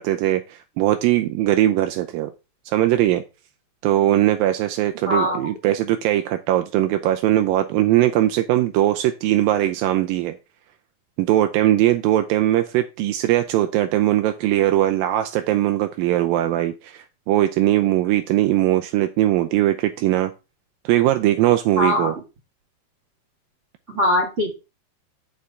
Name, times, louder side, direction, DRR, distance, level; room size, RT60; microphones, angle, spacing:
voice 1, 0.0-2.3 2.7-3.2 3.8-10.4 11.2-20.3 20.9-22.1, right 14 dB, 85° right, 7 dB, 2.1 m, -20 dB
voice 2, 5.1-5.4 21.8-22.1 23.9-24.5, left 1 dB, 20° right, -1 dB, 2.4 m, -21 dB
8.4 x 6.5 x 3.7 m, 0.29 s
omnidirectional pair, 4.6 m